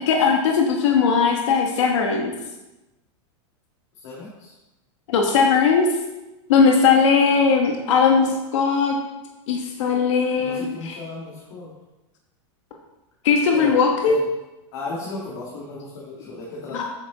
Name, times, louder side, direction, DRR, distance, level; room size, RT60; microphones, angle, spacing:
voice 1, 0.1-2.3 5.1-5.9 6.5-8.9 9.5-11.0 13.2-14.1 16.7-16.8, left 5 dB, 75° left, 1 dB, 1.5 m, -19 dB
voice 2, 4.0-4.5 8.0-8.3 10.3-11.7 13.5-13.7 14.1-14.3 14.7-16.8, left 3 dB, 60° left, -5 dB, 2.6 m, -35 dB
8.5 x 7.1 x 4.2 m, 1.0 s
supercardioid pair, 150°, 16 cm